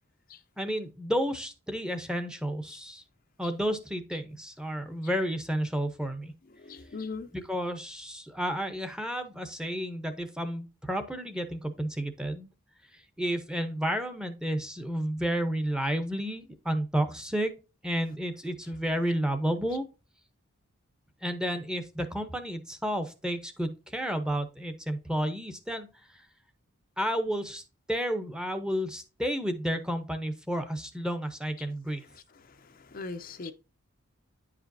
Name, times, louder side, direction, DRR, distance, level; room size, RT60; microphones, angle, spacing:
voice 1, 0.6-3.0 3.4-6.3 7.3-12.5 13.2-17.5 17.8-19.8 21.2-25.9 27.0-27.6 27.9-32.1, equal, 5° right, 0.8 m, -31 dB
voice 2, 6.5-7.3 31.6-31.7 32.1-33.5, left 4 dB, 40° left, 0.5 m, -41 dB
9.7 x 5.0 x 2.7 m
head